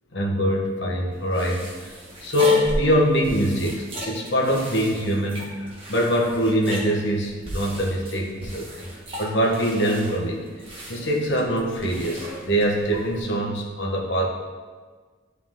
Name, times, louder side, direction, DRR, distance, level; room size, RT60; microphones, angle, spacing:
voice 1, 0.1-1.6 2.2-5.5 5.9-8.7 9.2-10.4 10.9-14.3, equal, 70° left, -1 dB, 1.3 m, -23 dB
sound 1, 1.1-13.2, equal, 30° right, 1.8 m, -36 dB
11.5 x 4.1 x 3.8 m, 1.5 s
head